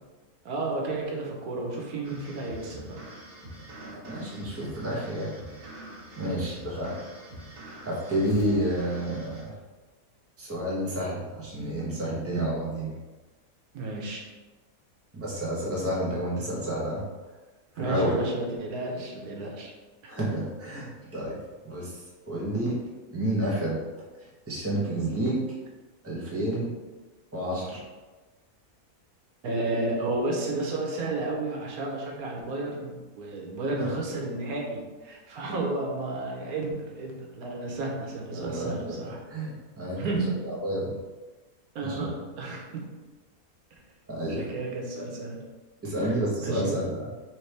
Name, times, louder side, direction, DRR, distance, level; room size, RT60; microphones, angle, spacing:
voice 1, 0.4-3.0 6.2-6.6 13.7-14.2 17.8-19.7 20.0-20.1 29.4-39.2 40.0-40.3 41.7-42.9 44.3-45.4 46.0-46.1 46.4-46.8, right 2 dB, 90° right, 0 dB, 1.3 m, -32 dB
sound 1, 2.0-9.4, right 1 dB, 65° right, 1.5 m, -45 dB
voice 2, 3.7-5.3 6.2-7.0 7.8-9.6 10.4-12.9 15.1-17.0 17.7-18.1 20.1-21.4 21.6-22.8 23.1-23.8 24.1-25.4 26.0-26.7 27.3-27.8 33.8-33.9 38.3-39.0 39.3-40.2 40.4-41.0 41.8-42.0 44.1-44.5 45.8-47.1, right 1 dB, 10° right, -5 dB, 0.9 m, -30 dB
sound 2, 8.2-9.8, left 3 dB, 65° left, 0.5 m, -46 dB
4.5 x 3.1 x 3.3 m, 1.2 s
omnidirectional pair, 1.5 m